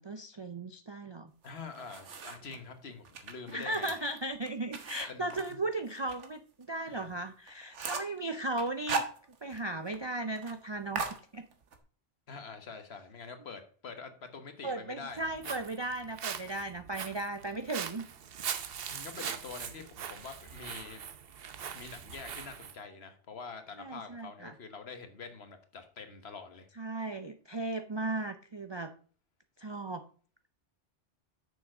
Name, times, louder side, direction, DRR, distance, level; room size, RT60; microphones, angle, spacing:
voice 1, 0.0-1.3 3.5-9.0 9.4-11.0 11.3-11.5 14.6-18.1 23.8-24.5 26.8-28.9 29.6-30.0, right 2 dB, 40° right, 8 dB, 0.3 m, -36 dB
voice 2, 1.4-3.9 5.1-5.6 7.0-7.1 12.3-15.5 18.9-21.0 21.7-26.7, left 5 dB, 65° left, 7 dB, 1.4 m, -46 dB
sound 1, 1.4-2.6 3.0-6.3 6.6-6.7 7.1-7.2 7.5-8.2 8.6-9.7 9.9-10.0 10.3-10.6 10.9-11.8, right 4 dB, 85° right, 1.5 m, -38 dB
Walk footsteps, 15.1-22.8, right 8 dB, 60° right, 0.9 m, -41 dB
6.9 x 6.4 x 4.8 m, 0.43 s
omnidirectional pair, 1.2 m